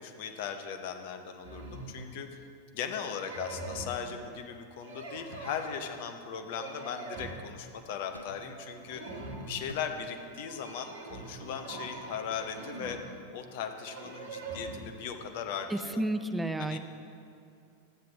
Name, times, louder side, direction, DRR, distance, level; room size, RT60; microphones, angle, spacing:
voice 1, 0.0-2.4 2.7-9.0 9.4-13.0 13.3-16.0 16.6-16.8, left 7 dB, 50° left, 6 dB, 0.6 m, -38 dB
sound 1, 1.4-2.1 2.9-4.0 4.8-6.0 6.4-7.5 8.1-8.5 8.7-9.7 10.5-13.0 13.9-15.0, right 3 dB, 60° right, 1.0 m, -43 dB
sound 2, 6.8-8.4 8.8-8.9 9.7-10.9, left 2 dB, 85° left, 0.3 m, -52 dB
voice 2, 15.7-16.8, right 1 dB, 5° right, 10 dB, 0.4 m, -31 dB
11.0 x 7.5 x 3.2 m, 2.5 s
figure-of-eight pair, 90°, 0 cm